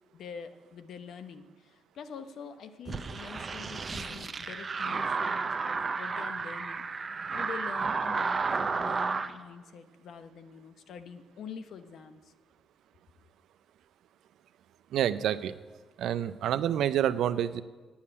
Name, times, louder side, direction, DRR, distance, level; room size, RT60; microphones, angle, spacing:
voice 1, 0.1-6.9 7.3-12.3, left 6 dB, 70° left, 9 dB, 0.9 m, -45 dB
sound 1, 2.9-9.3, right 4 dB, 35° right, 0.6 m, -32 dB
voice 2, 14.9-15.5 16.0-17.6, right 10 dB, 75° right, 14 dB, 0.5 m, -28 dB
9.4 x 7.2 x 8.6 m, 1.3 s
cardioid pair, 90°, 0 cm